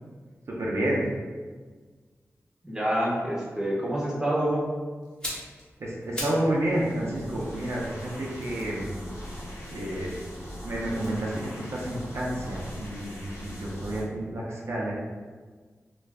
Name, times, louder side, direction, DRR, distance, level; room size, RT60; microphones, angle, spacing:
voice 1, 0.6-1.0 5.8-8.9 9.7-10.1 10.6-14.9, right 1 dB, 65° right, -5 dB, 0.6 m, -30 dB
voice 2, 2.6-4.7, right 1 dB, 10° right, -5 dB, 0.8 m, -27 dB
sound 1, 5.0-6.5 6.8-10.1 10.9-13.0 13.2-13.4, equal, 15° left, 0.9 m, -42 dB
sound 2, 6.4-14.0, equal, 70° left, 0.9 m, -41 dB
2.5 x 2.4 x 3.3 m, 1.5 s
wide cardioid pair, 80°, 5 cm